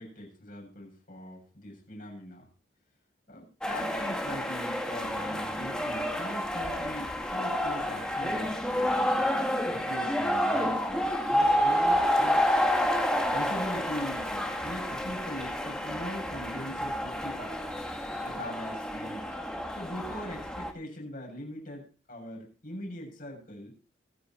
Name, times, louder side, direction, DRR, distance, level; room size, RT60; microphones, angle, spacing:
voice 1, 0.0-2.5 3.3-9.2 9.6-12.4 13.3-17.5 18.2-19.4 19.8-23.8, left 1 dB, 45° left, 0 dB, 7.6 m, -41 dB
sound 1, 3.6-20.7, equal, 5° left, 1.9 m, -29 dB
24.0 x 9.6 x 3.0 m, 0.37 s
head